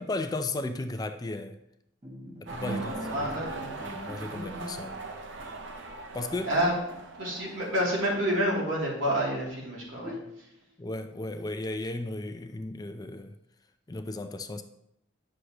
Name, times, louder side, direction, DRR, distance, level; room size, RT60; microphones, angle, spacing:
voice 1, 0.0-1.6 2.4-5.0 6.1-6.5 10.8-13.3 13.9-14.6, left 2 dB, 20° left, 8 dB, 0.4 m, -35 dB
Bowed string instrument, 2.0-5.1 5.4-5.6 6.0-6.1 6.4-8.3 8.6-9.4 10.0-10.6, right 1 dB, 25° right, 1.1 m, -43 dB
sound 1, 2.5-8.6, right 3 dB, 65° right, 0.7 m, -41 dB
voice 2, 2.7-3.8 6.4-6.7 7.2-10.2, equal, 85° right, -4 dB, 2.8 m, -29 dB
9.3 x 6.4 x 2.9 m, 0.81 s
head